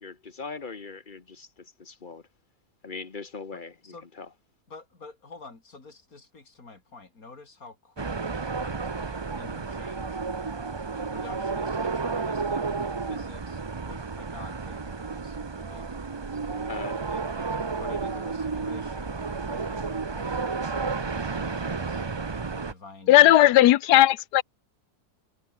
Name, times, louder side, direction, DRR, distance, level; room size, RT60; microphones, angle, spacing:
voice 1, 0.0-2.2 2.8-3.7 4.2-4.3 16.7-17.0, left 4 dB, 35° left, 1.4 m, -39 dB
voice 2, 3.5-4.1 4.7-10.2 11.1-12.6 13.0-15.9 17.1-22.0 22.5-23.7, left 3 dB, 60° left, 4.2 m, -48 dB
sound 1, 8.0-22.7, right 4 dB, 35° right, 0.4 m, -32 dB
voice 3, 23.1-24.4, left 14 dB, 85° left, 1.2 m, -16 dB
omnidirectional pair, 1.7 m